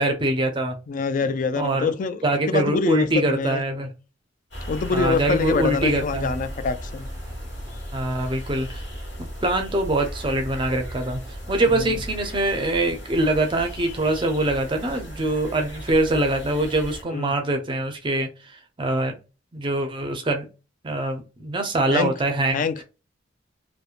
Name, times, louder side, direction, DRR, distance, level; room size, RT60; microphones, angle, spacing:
voice 1, 0.0-0.7 1.2-1.9 2.2-3.9 4.9-6.3 7.9-8.8 9.2-11.2 11.5-19.1 19.5-20.5 20.8-22.6, right 1 dB, 25° right, 0.5 m, -24 dB
voice 2, 0.9-2.2 2.5-3.6 4.7-7.1 11.7-12.0 17.1-17.3 21.9-22.1 22.5-22.8, left 4 dB, 45° left, 0.3 m, -25 dB
sound 1, 4.5-17.0, equal, 65° left, 1.3 m, -36 dB
2.9 x 2.0 x 2.4 m
head